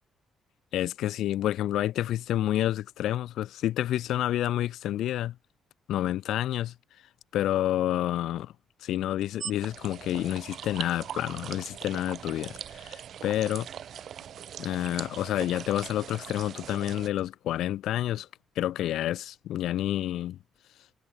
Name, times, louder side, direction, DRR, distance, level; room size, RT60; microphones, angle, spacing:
voice 1, 0.7-5.4 5.9-6.7 7.3-8.5 8.8-13.7 14.6-18.3 18.6-20.4, left 13 dB, 80° left, 2.2 m, -29 dB
sound 1, 9.4-17.1, right 9 dB, 65° right, 0.9 m, -41 dB
cardioid pair, 90°, 0 cm